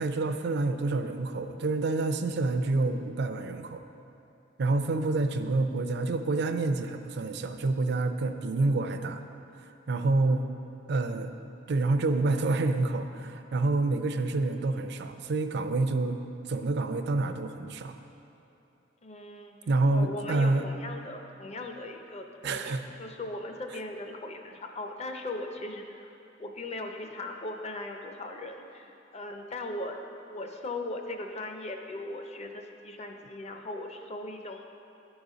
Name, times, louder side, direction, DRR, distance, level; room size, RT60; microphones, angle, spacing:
voice 1, 0.0-3.8 4.6-9.2 9.9-10.4 10.9-11.3 11.7-16.2 16.5-18.0 19.7-20.7 22.4-22.9, right 2 dB, 60° right, 8 dB, 0.4 m, -28 dB
voice 2, 19.0-19.6 19.9-26.1 26.4-30.0 30.3-34.7, left 2 dB, 35° left, 4 dB, 0.6 m, -38 dB
11.0 x 4.0 x 4.9 m, 2.8 s
head